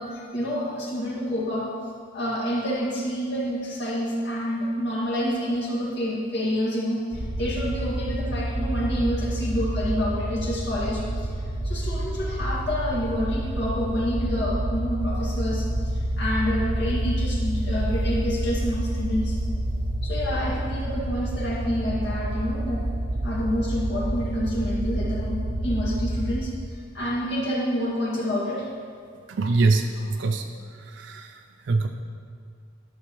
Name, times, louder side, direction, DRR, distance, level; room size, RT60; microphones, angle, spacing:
voice 1, 0.0-1.7 2.1-11.3 11.6-19.4 20.0-22.8 23.2-25.4 25.6-26.5 26.9-28.7, equal, 60° left, -5 dB, 2.0 m, -28 dB
sound 1, 7.1-26.4, right 1 dB, 45° right, 0.8 m, -28 dB
voice 2, 29.3-30.5 30.9-31.9, right 3 dB, 65° right, 5 dB, 0.4 m, -24 dB
12.0 x 7.0 x 3.1 m, 2.2 s
head